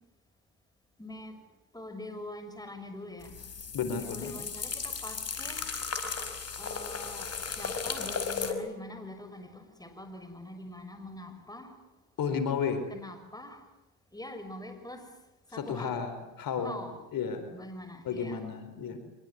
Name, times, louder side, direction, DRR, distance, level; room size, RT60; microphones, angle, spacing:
voice 1, 1.0-1.4 1.7-3.4 3.9-5.7 6.6-11.7 12.9-13.6 14.1-15.0 15.5-15.9 16.6-16.9 17.5-18.4, left 1 dB, 10° left, 8 dB, 6.8 m, -44 dB
sound 1, 3.2-8.5, left 5 dB, 45° left, 5.0 m, -36 dB
voice 2, 3.7-4.3 12.2-12.8 15.5-16.8 17.1-17.5 18.0-19.0, left 6 dB, 65° left, 9 dB, 4.7 m, -32 dB
25.5 x 23.0 x 9.6 m, 0.94 s
supercardioid pair, 65°, 36 cm